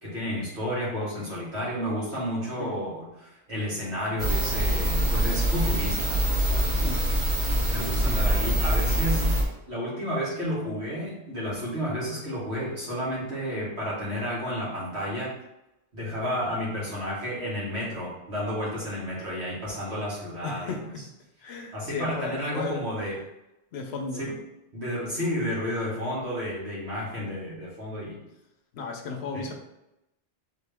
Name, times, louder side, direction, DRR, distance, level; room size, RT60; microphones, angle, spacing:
voice 1, 0.0-6.8 7.7-9.3 9.7-15.4 15.9-20.8 21.7-23.2 24.2-24.3 24.7-28.2 29.3-29.5, equal, 70° right, -7 dB, 2.0 m, -31 dB
sound 1, 4.2-9.4, equal, 45° right, 0.9 m, -24 dB
voice 2, 7.9-8.6 20.4-21.1 21.4-23.2 23.7-24.4 28.7-29.5, left 4 dB, 70° left, 4 dB, 0.8 m, -35 dB
4.1 x 3.0 x 3.4 m, 0.91 s
omnidirectional pair, 1.1 m